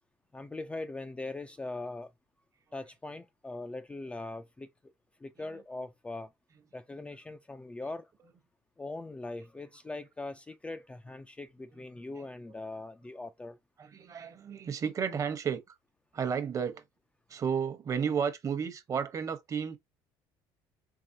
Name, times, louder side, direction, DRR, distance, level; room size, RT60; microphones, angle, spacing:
voice 1, 0.3-2.1 2.7-4.7 5.2-6.3 6.7-8.1 8.8-13.6, left 2 dB, 10° left, 0.4 m, -41 dB
voice 2, 13.8-15.6 16.1-16.8 17.3-19.8, right 7 dB, 35° right, 1.0 m, -32 dB
4.8 x 3.5 x 2.7 m
cardioid pair, 110°, 9 cm